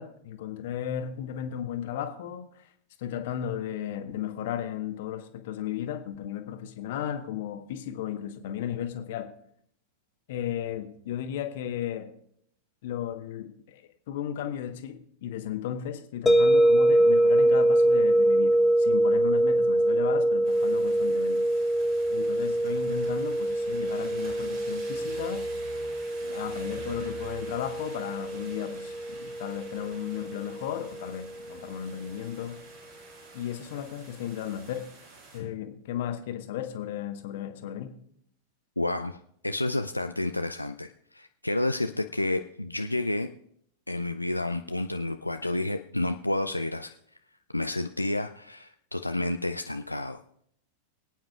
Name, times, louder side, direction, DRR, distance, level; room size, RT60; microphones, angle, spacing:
voice 1, 0.0-2.7 3.0-9.3 10.3-12.1 12.8-21.4 22.1-25.4 26.2-32.6 33.3-34.9 35.3-38.0, left 10 dB, 55° left, 7 dB, 1.2 m, -35 dB
sound 1, 16.3-31.2, right 1 dB, 10° left, 0.6 m, -24 dB
sound 2, 20.4-35.4, right 3 dB, 50° right, 5.5 m, -49 dB
voice 2, 38.8-39.2 39.4-43.3 43.9-46.9 47.5-50.2, left 2 dB, 85° left, 7 dB, 0.4 m, -30 dB
24.0 x 9.0 x 2.4 m, 0.69 s
figure-of-eight pair, 90°, 0 cm